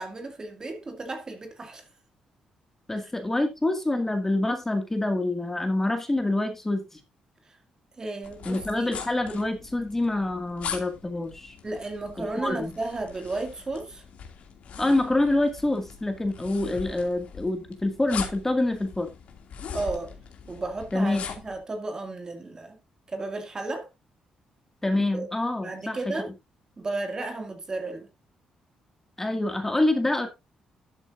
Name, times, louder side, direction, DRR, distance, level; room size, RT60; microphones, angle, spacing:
voice 1, 0.0-1.8 3.0-3.1 7.5-7.6 8.0-8.9 11.6-14.0 19.7-20.1 20.5-21.2 21.4-22.8 23.1-23.9 24.9-25.3 25.6-26.3 26.8-28.1, right 2 dB, 30° right, 2.3 m, -33 dB
voice 2, 2.9-7.0 8.5-11.5 12.2-12.7 14.8-19.1 20.9-21.2 24.8-26.0 29.2-30.3, left 2 dB, 15° left, 2.1 m, -26 dB
sound 1, 8.2-21.6, left 6 dB, 65° left, 2.4 m, -41 dB
12.5 x 8.2 x 2.6 m
cardioid pair, 95°, 2 cm